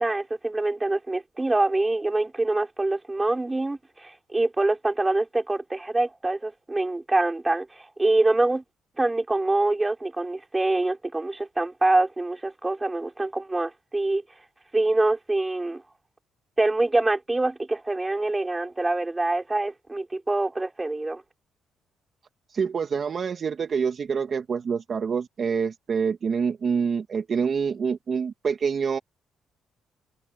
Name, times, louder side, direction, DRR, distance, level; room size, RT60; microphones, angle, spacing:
voice 1, 0.0-8.6 9.0-14.2 14.7-15.8 16.6-21.2, right 2 dB, 15° right, 5.0 m, -25 dB
voice 2, 22.5-29.0, right 6 dB, 45° right, 2.2 m, -26 dB
cardioid pair, 90°, 0 cm